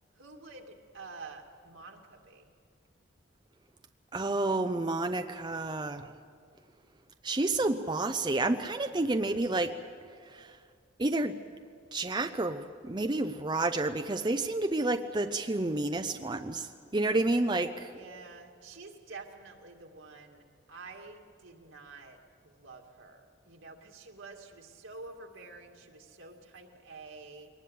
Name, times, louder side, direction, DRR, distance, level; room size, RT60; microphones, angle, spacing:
voice 1, 0.1-2.5 8.8-9.5 17.9-20.4 20.7-27.5, right 3 dB, 85° right, 2 dB, 2.4 m, -49 dB
voice 2, 4.1-6.1 7.2-9.7 10.3-10.5 11.0-11.4 11.9-17.9, right 2 dB, 25° right, 7 dB, 0.6 m, -30 dB
22.0 x 19.5 x 8.4 m, 2.1 s
head